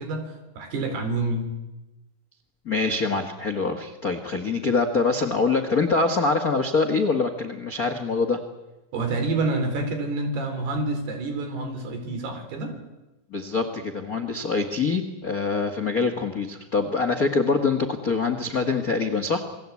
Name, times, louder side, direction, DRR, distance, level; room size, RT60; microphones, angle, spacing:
voice 1, 0.0-1.5 8.9-12.8, right 2 dB, 80° right, 6 dB, 6.0 m, -28 dB
voice 2, 2.6-8.4 13.3-19.4, left 4 dB, 60° left, 8 dB, 0.9 m, -24 dB
28.5 x 20.5 x 8.5 m, 1.0 s
omnidirectional pair, 4.5 m